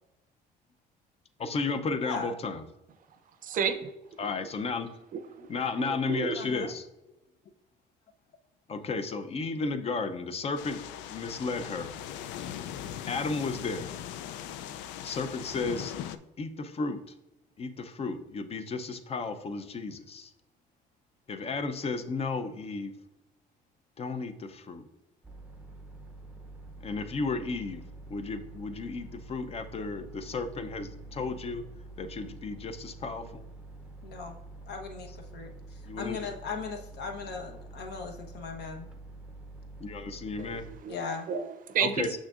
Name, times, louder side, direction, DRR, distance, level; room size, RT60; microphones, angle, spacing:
voice 1, 1.4-2.6 4.2-4.9 5.5-6.9 8.7-10.8 11.1-11.9 13.1-13.9 15.0-15.9 16.4-17.0 17.6-20.3 21.3-22.9 24.0-24.8 26.8-27.8 28.1-31.6 32.0-33.4 35.9-36.2 39.8-40.6 41.8-42.2, left 4 dB, 35° left, 9 dB, 0.6 m, -33 dB
voice 2, 2.0-2.3 6.3-6.7 34.0-34.4 34.7-35.5 36.0-38.9 40.9-41.3, left 5 dB, 65° left, 4 dB, 1.1 m, -38 dB
voice 3, 3.4-3.9 4.2-4.3 5.1-6.4 40.4-41.0 41.3-42.2, right 7 dB, 45° right, 9 dB, 0.6 m, -32 dB
sound 1, 10.6-16.2, left 10 dB, 85° left, 0.4 m, -40 dB
sound 2, 25.2-40.8, right 2 dB, 5° right, 0.7 m, -47 dB
6.2 x 6.2 x 2.5 m, 0.98 s
cardioid pair, 120°, 19 cm